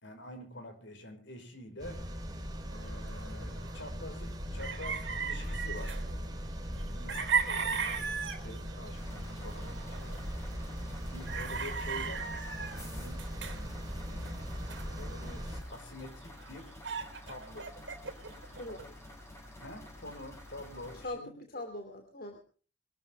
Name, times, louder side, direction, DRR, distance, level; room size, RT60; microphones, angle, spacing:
voice 1, 0.0-2.1 2.7-7.8 8.4-10.2 11.1-12.3 12.5-14.4 14.8-16.8 17.3-17.8 18.8-18.9 19.6-21.4, left 1 dB, 65° left, 6 dB, 5.3 m, -47 dB
sound 1, 1.8-15.6, equal, 20° right, 4.0 m, -40 dB
sound 2, 2.7-3.9 4.3-4.4 4.6-6.3 6.8-9.0 9.3-10.4 11.0-15.7 16.1-16.2 16.4-18.8, right 6 dB, 70° right, 3.4 m, -37 dB
sound 3, 8.9-21.1, left 1 dB, 15° left, 7.2 m, -50 dB
voice 2, 20.9-22.4, left 2 dB, 50° left, 5 dB, 2.8 m, -42 dB
24.0 x 13.0 x 3.5 m, 0.40 s
head